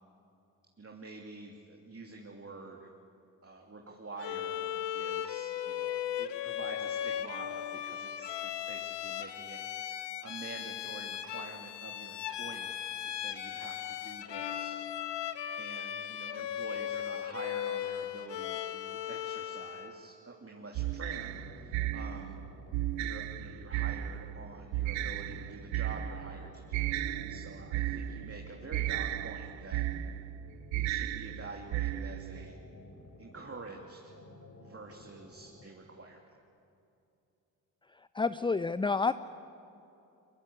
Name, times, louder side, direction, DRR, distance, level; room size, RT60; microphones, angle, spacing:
voice 1, 0.8-2.9 3.4-14.8 15.2-22.4 23.0-29.9 30.7-32.6 33.2-34.1 34.6-36.3, right 3 dB, 30° right, 0 dB, 2.9 m, -47 dB
Bowed string instrument, 4.2-20.0, left 10 dB, 60° left, 1.2 m, -37 dB
sound 1, 20.8-32.4, right 13 dB, 70° right, 0.8 m, -35 dB
sound 2, 20.9-35.6, left 2 dB, 35° left, 4.5 m, -53 dB
voice 2, 38.1-39.1, left 4 dB, 10° left, 14 dB, 0.5 m, -28 dB
23.0 x 22.5 x 8.3 m, 2.7 s
hypercardioid pair, 40°, 47 cm